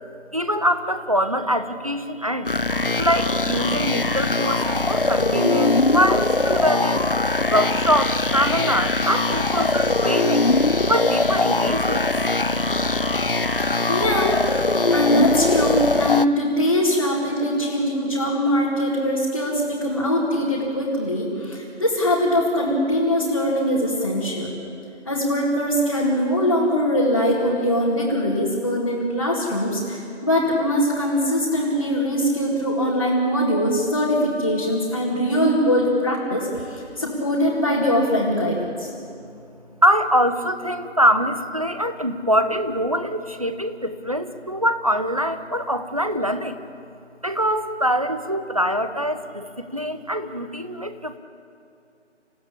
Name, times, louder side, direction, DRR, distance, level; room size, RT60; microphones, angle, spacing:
voice 1, 0.3-2.5 3.0-7.1 7.5-10.5 10.9-12.1 39.8-46.6 47.2-51.2, equal, 30° right, 9 dB, 1.0 m, -23 dB
sound 1, 2.5-16.3, left 2 dB, 50° left, 0.6 m, -21 dB
voice 2, 13.5-14.6 14.9-24.5 25.0-38.9, equal, 20° left, -7 dB, 2.1 m, -22 dB
28.5 x 16.0 x 8.7 m, 2.6 s
figure-of-eight pair, 170°, 36 cm